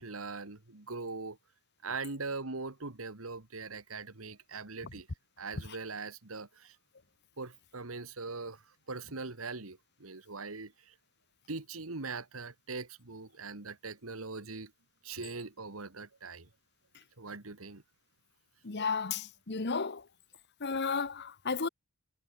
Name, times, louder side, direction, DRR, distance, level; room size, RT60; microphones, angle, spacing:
voice 1, 0.0-1.4 1.8-5.1 5.4-6.7 7.4-8.6 8.9-10.7 11.5-14.7 15.0-16.5 17.2-17.8, right 3 dB, 90° right, 2.0 m, -41 dB
voice 2, 18.6-20.0 20.6-21.7, left 5 dB, 55° left, 1.2 m, -33 dB
head